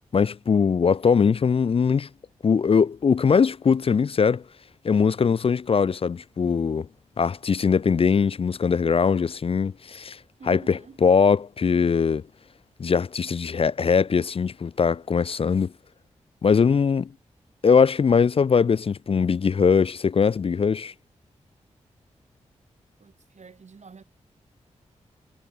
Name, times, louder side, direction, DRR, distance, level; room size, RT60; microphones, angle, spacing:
voice 1, 0.1-2.1 2.4-4.4 4.8-6.9 7.2-10.2 10.5-12.2 12.8-15.7 16.4-17.1 17.6-20.9, left 6 dB, 45° left, 0.4 m, -21 dB
voice 2, 10.4-11.0 23.0-24.0, right 5 dB, 60° right, 3.5 m, -46 dB
cardioid pair, 45°, 13 cm